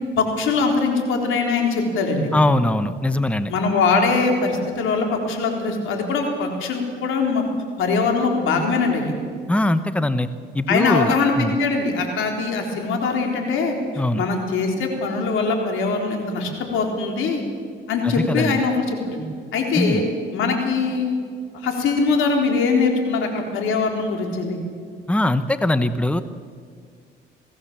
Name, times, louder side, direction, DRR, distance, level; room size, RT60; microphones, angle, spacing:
voice 1, 0.2-2.3 3.5-7.4 7.8-9.1 10.7-13.8 14.2-17.4 17.9-19.2 19.5-20.0 20.3-21.2 21.5-24.6, left 4 dB, 85° left, 3 dB, 3.8 m, -22 dB
voice 2, 2.3-3.5 9.5-10.3 10.5-11.5 14.0-14.2 18.0-18.6 19.7-20.0 25.1-26.2, left 1 dB, 5° left, 12 dB, 0.9 m, -21 dB
21.5 x 16.5 x 7.4 m, 2.1 s
cardioid pair, 90°, 20 cm